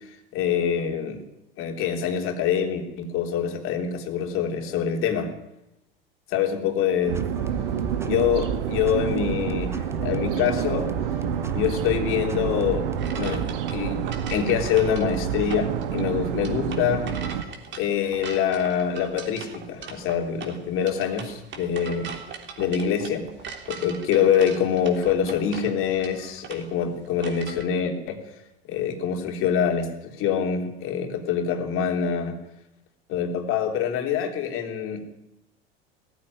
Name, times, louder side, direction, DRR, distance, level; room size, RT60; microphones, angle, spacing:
voice 1, 0.3-1.2 1.6-5.3 6.3-7.2 8.0-10.9 11.5-12.9 13.2-14.0 14.3-17.2 17.8-22.1 22.6-23.2 23.7-28.2 28.7-32.4 33.1-35.0, left 8 dB, 45° left, 4 dB, 3.6 m, -25 dB
sound 1, 7.0-13.4, right 2 dB, 10° right, 1.5 m, -39 dB
sound 2, 7.1-17.4, right 9 dB, 65° right, 1.7 m, -28 dB
sound 3, 13.0-27.6, right 6 dB, 35° right, 3.4 m, -40 dB
19.0 x 14.5 x 9.8 m, 0.90 s
figure-of-eight pair, 80°, 30 cm